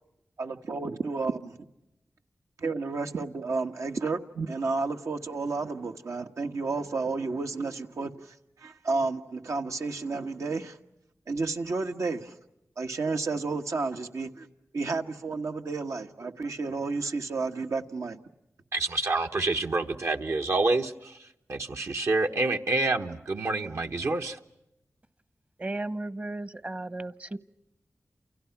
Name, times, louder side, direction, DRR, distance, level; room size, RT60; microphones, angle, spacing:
voice 1, 0.4-1.5 2.6-10.8 11.3-12.3 12.8-14.5 14.7-18.2, right 3 dB, 85° right, 1.5 m, -31 dB
voice 2, 18.7-24.4, right 2 dB, 70° right, 1.3 m, -28 dB
voice 3, 25.6-27.4, right 2 dB, 30° right, 0.9 m, -35 dB
29.0 x 28.5 x 5.9 m
wide cardioid pair, 85°, 5 cm